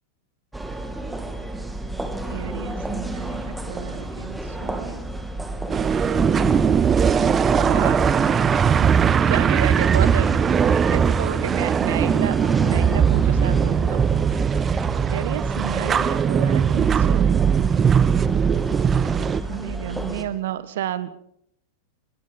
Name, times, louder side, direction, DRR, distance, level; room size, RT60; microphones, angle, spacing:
sound 1, 0.5-20.2, right 1 dB, 5° right, 2.5 m, -31 dB
voice 1, 2.3-5.0 7.6-8.0 8.8-8.9 9.3-10.3 10.9-14.0 15.1-17.4 19.5-21.2, right 12 dB, 55° right, 15 dB, 1.5 m, -31 dB
sound 2, 5.7-19.4, right 7 dB, 20° right, 0.8 m, -20 dB
24.0 x 21.5 x 5.5 m, 0.73 s
figure-of-eight pair, 90°, 0 cm